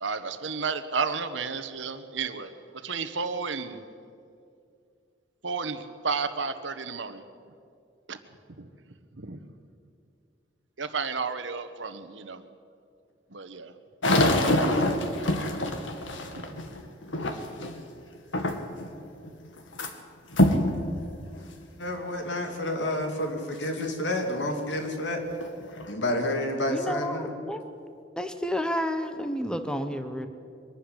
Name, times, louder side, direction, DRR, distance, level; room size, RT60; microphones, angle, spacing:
voice 1, 0.0-3.8 5.4-7.2 8.1-8.2 8.6-8.7 9.1-9.4 10.8-12.4 13.3-13.7 15.2-15.3 16.3-16.9, right 5 dB, 75° right, 10 dB, 1.3 m, -32 dB
sound 1, 14.0-17.8 18.3-18.9 19.2-19.9 20.3-20.7 21.3-21.4 22.1-22.2 24.7-24.8 25.3-25.9, left 1 dB, 90° left, 2.0 m, -25 dB
voice 2, 14.0-15.0 21.8-25.2 25.9-27.3, left 1 dB, 70° left, 4 dB, 2.9 m, -30 dB
voice 3, 26.7-27.6 28.2-30.3, equal, 5° left, 8 dB, 1.1 m, -30 dB
23.0 x 12.5 x 10.0 m, 2.4 s
head